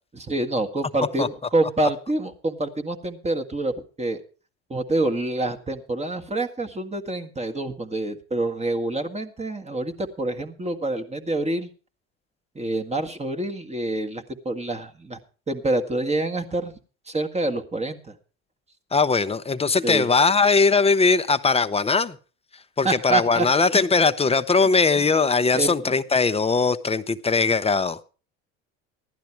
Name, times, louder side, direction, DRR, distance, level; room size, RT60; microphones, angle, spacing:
voice 1, 0.1-3.7 4.0-4.2 4.7-11.7 12.5-15.2 15.5-16.7 17.1-18.1 19.8-20.1 22.8-23.5 23.7-23.8 25.5-25.9, right 2 dB, 20° right, 5 dB, 1.7 m, -27 dB
voice 2, 18.9-22.2 22.8-28.0, left 4 dB, 15° left, 12 dB, 0.8 m, -20 dB
15.0 x 11.5 x 4.6 m, 0.36 s
hypercardioid pair, 75°, 35 cm